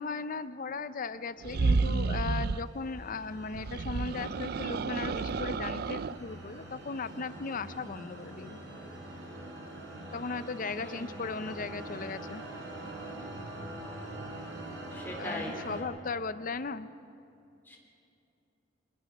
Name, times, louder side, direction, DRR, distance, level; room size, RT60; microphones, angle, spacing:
voice 1, 0.0-8.6 10.1-12.4 15.2-16.9, left 4 dB, 45° left, 13 dB, 0.6 m, -37 dB
sound 1, 1.4-2.7 3.5-6.2, right 4 dB, 55° right, 0.4 m, -30 dB
sound 2, 1.7-15.8, right 1 dB, 75° right, 4.6 m, -44 dB
voice 2, 10.8-11.4 14.9-15.6 17.7-17.8, left 1 dB, 10° left, -1 dB, 3.6 m, -41 dB
23.5 x 21.0 x 6.0 m, 2.7 s
head